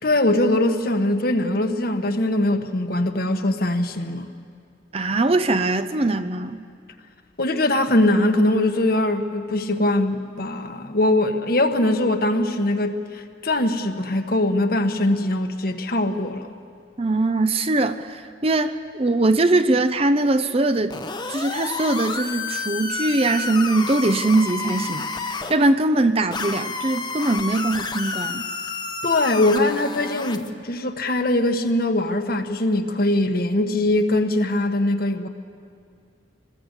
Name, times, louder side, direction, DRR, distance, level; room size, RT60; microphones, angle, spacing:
voice 1, 0.0-4.3 7.4-16.5 29.0-35.3, left 1 dB, 50° left, 1.3 m, -21 dB
voice 2, 4.9-6.6 17.0-20.9 21.3-28.4, right 2 dB, 30° right, 0.7 m, -21 dB
sound 1, 20.9-25.5 26.3-30.5, left 4 dB, 25° left, 0.9 m, -30 dB
26.0 x 20.5 x 8.2 m
head